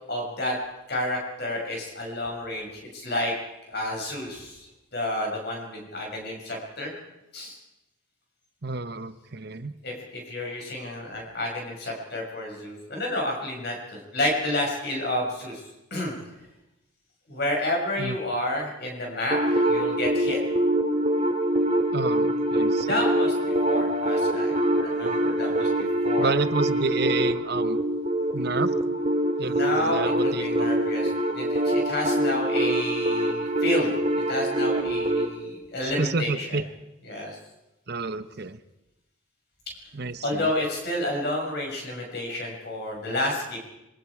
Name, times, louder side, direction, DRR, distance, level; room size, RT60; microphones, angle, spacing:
voice 1, 0.1-0.6 0.9-3.3 3.7-6.9 7.3-7.6 9.8-16.1 17.3-20.4 22.8-26.3 29.4-36.6 37.0-37.4 40.2-43.6, left 1 dB, 50° left, 0 dB, 6.2 m, -30 dB
voice 2, 8.6-9.8 18.0-18.2 21.9-23.0 26.2-27.8 28.3-28.7 29.4-30.8 36.0-36.6 37.9-38.6 39.9-40.5, right 3 dB, 50° right, 12 dB, 0.9 m, -30 dB
sound 1, 19.3-35.3, right 1 dB, 35° right, 2.1 m, -24 dB
26.0 x 23.5 x 4.9 m, 0.93 s
head